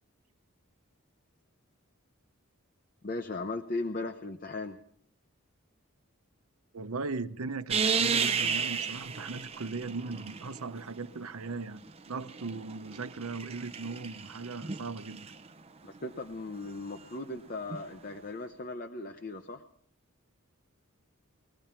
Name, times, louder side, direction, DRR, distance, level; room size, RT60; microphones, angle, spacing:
voice 1, 3.0-4.8 15.8-19.6, left 2 dB, 40° left, 0.8 m, -37 dB
voice 2, 6.7-11.8 12.1-15.3, right 3 dB, 90° right, 0.8 m, -38 dB
sound 1, 7.7-10.8 11.9-15.4 17.7-17.8, right 6 dB, 30° right, 0.6 m, -33 dB
21.5 x 15.0 x 4.4 m
head